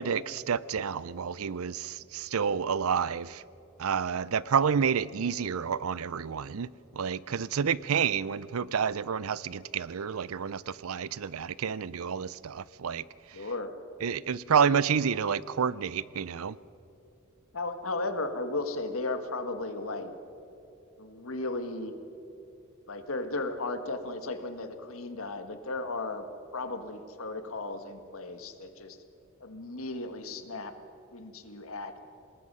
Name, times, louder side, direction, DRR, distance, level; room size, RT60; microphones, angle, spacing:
voice 1, 0.0-3.4 3.8-6.7 6.9-13.0 14.0-16.6, right 7 dB, 80° right, 20 dB, 0.5 m, -29 dB
voice 2, 13.3-13.7 17.5-20.1 21.0-22.0 22.9-26.3 26.5-29.0 29.4-30.7 31.1-32.0, left 2 dB, 75° left, 8 dB, 1.7 m, -35 dB
26.5 x 20.0 x 5.6 m, 3.0 s
head